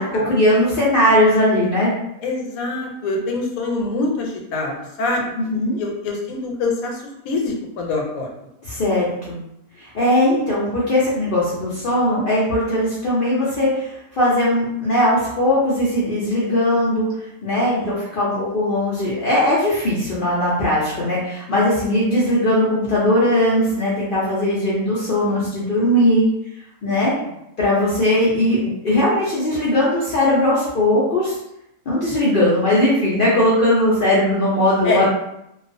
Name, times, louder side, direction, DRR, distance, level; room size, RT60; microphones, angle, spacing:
voice 1, 0.0-1.9 5.4-5.8 8.6-9.4 9.8-17.1 17.4-26.2 26.8-27.1 27.6-31.4 31.9-35.1, left 1 dB, 60° left, -7 dB, 0.5 m, -19 dB
voice 2, 2.2-8.3 17.8-17.9 34.8-35.1, left 2 dB, 80° left, 1 dB, 1.0 m, -25 dB
2.3 x 2.3 x 2.5 m, 0.81 s
omnidirectional pair, 1.5 m